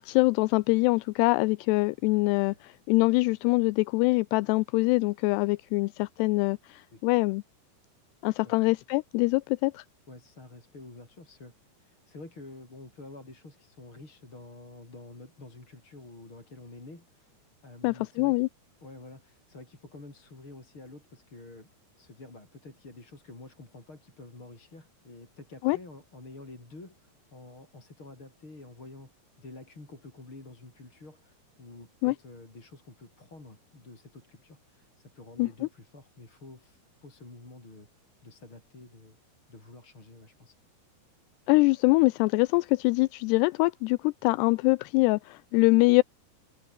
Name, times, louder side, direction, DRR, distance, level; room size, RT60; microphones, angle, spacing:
voice 1, 0.0-7.4 8.2-9.8 17.8-18.5 25.6-25.8 32.0-32.1 35.4-35.5 41.5-46.0, left 24 dB, 85° left, 2.6 m, -24 dB
voice 2, 10.1-11.5 11.8-17.4 17.6-18.4 18.8-21.7 21.9-29.1 29.4-37.9 38.2-39.2 39.5-40.6, left 2 dB, 30° left, 7.4 m, -48 dB
omnidirectional pair, 4.8 m